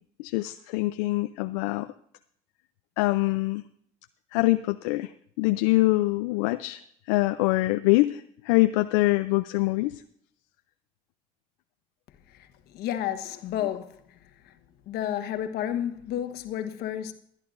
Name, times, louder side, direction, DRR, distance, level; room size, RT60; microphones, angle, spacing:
voice 1, 0.2-1.9 3.0-3.6 4.3-5.1 5.4-6.8 7.1-10.0, left 20 dB, 85° left, 0.4 m, -24 dB
voice 2, 12.7-14.2 14.4-14.5 14.9-17.1, left 11 dB, 70° left, 1.2 m, -31 dB
22.5 x 10.5 x 2.5 m
supercardioid pair, 70°, 17 cm